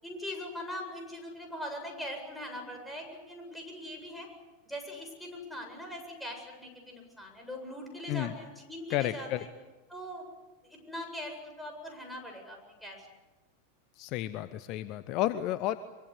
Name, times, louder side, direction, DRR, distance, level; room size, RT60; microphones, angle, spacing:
voice 1, 0.0-4.3 4.6-9.5 9.9-10.3 10.6-13.1, left 1 dB, ahead, 2 dB, 8.0 m, -41 dB
voice 2, 8.9-9.4 14.0-15.8, left 14 dB, 40° left, 14 dB, 0.9 m, -31 dB
24.5 x 24.5 x 8.2 m, 1.2 s
figure-of-eight pair, 90°, 0 cm